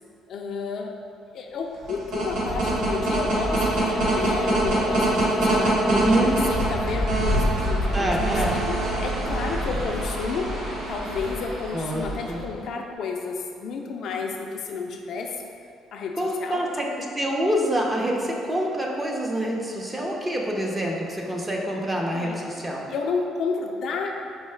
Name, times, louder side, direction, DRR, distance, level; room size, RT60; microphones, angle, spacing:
voice 1, 0.3-1.0 1.3-10.5 10.9-15.4 15.9-16.7 22.1-22.4 22.9-24.1, left 4 dB, 55° left, 2 dB, 0.3 m, -31 dB
sound 1, 1.7-12.5, right 1 dB, 65° right, 1.2 m, -25 dB
voice 2, 5.9-6.3 7.9-8.6 11.7-12.4 16.2-16.9 17.1-22.9, right 1 dB, 15° right, -1 dB, 0.5 m, -26 dB
4.5 x 3.0 x 3.2 m, 2.4 s
cardioid pair, 145°, 0 cm